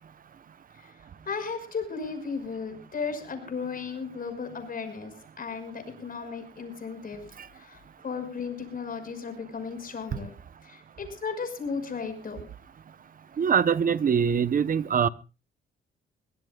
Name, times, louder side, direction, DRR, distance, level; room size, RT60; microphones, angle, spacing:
voice 1, 1.3-7.2 7.5-10.3 10.6-12.4, left 5 dB, 45° left, 8 dB, 5.7 m, -35 dB
voice 2, 13.4-15.1, right 7 dB, 45° right, 17 dB, 0.8 m, -23 dB
23.0 x 18.0 x 2.3 m, 0.31 s
cardioid pair, 90°, 20 cm